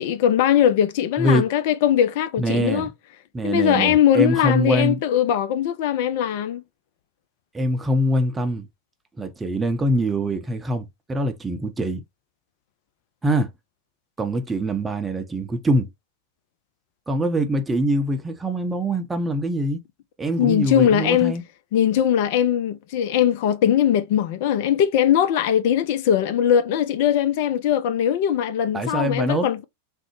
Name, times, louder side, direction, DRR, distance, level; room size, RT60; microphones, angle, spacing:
voice 1, 0.0-2.9 3.4-6.6 20.4-21.3 21.7-29.6, left 10 dB, 50° left, 0.3 m, -20 dB
voice 2, 2.4-2.9 3.3-5.0 7.5-8.7 9.2-12.0 13.2-13.5 14.2-15.9 17.1-19.8 20.2-21.4 28.7-29.5, right 1 dB, 10° right, 0.6 m, -23 dB
3.7 x 2.0 x 2.9 m
figure-of-eight pair, 90°, 0 cm